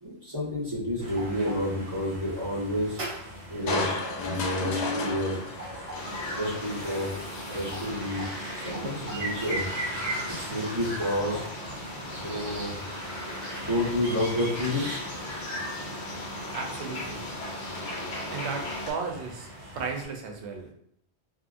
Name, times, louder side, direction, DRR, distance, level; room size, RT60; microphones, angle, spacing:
voice 1, 0.0-3.0 3.5-5.3 6.3-7.1 7.5-8.2 8.5-9.6 10.3-11.4 12.1-12.7 13.6-14.9, left 1 dB, 20° right, -7 dB, 1.1 m, -30 dB
sound 1, 1.0-20.0, right 1 dB, 60° right, 1.1 m, -39 dB
Crushing, 3.7-7.0 7.5-7.6, left 3 dB, 70° left, 0.8 m, -32 dB
sound 2, 5.9-18.9, left 1 dB, 90° left, 1.1 m, -38 dB
voice 2, 16.5-17.2 18.3-19.5 19.7-20.7, right 5 dB, 75° right, 2 dB, 0.9 m, -34 dB
2.8 x 2.5 x 2.5 m, 0.70 s
omnidirectional pair, 1.2 m